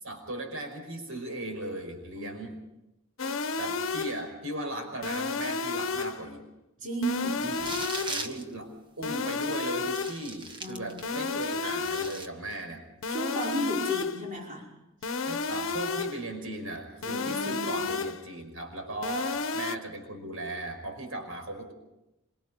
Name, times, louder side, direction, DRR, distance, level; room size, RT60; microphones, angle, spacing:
voice 1, 0.0-2.6 3.6-6.5 7.4-7.6 8.1-12.8 15.3-21.7, right 1 dB, 80° right, 5 dB, 5.4 m, -37 dB
sound 1, 3.2-4.3 5.0-6.3 7.0-8.3 9.0-10.3 11.0-12.3 13.0-14.3 15.0-16.3 17.0-18.3 19.0-19.8, left 4 dB, 70° left, 1.0 m, -32 dB
voice 2, 6.8-7.5 10.6-11.0 13.1-14.7 17.1-17.9, right 1 dB, 40° right, -2 dB, 5.5 m, -34 dB
sound 2, 7.4-8.4 9.2-9.3 9.9-11.1 11.5-12.3, right 2 dB, 20° right, 1.5 m, -38 dB
26.0 x 24.5 x 5.2 m, 0.92 s
head